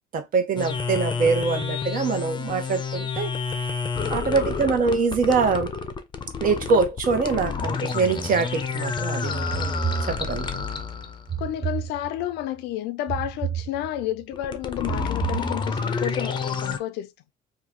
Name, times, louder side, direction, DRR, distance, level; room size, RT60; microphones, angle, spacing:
voice 1, 0.1-3.3 4.1-5.7 6.4-9.8 10.1-10.5, right 4 dB, 55° right, 1.0 m, -24 dB
sound 1, 0.6-11.3 14.3-16.8, left 5 dB, 30° left, 0.6 m, -29 dB
sound 2, 9.5-10.6 11.3-12.4 13.1-14.2 14.9-16.0, right 9 dB, 25° right, 0.6 m, -32 dB
voice 2, 11.4-17.1, left 12 dB, 85° left, 0.5 m, -31 dB
2.9 x 2.4 x 3.6 m
cardioid pair, 110°, 17 cm